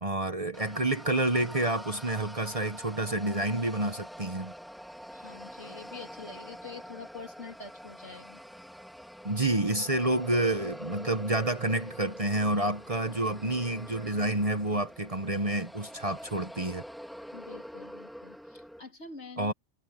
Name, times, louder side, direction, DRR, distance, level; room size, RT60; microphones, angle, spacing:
voice 1, 0.0-4.5 9.2-16.8 19.4-19.5, right 2 dB, 30° right, 1.1 m, -29 dB
sound 1, 0.5-18.8, equal, ahead, 3.6 m, -45 dB
voice 2, 5.1-8.4 17.3-19.5, left 4 dB, 70° left, 3.8 m, -46 dB
omnidirectional pair, 1.2 m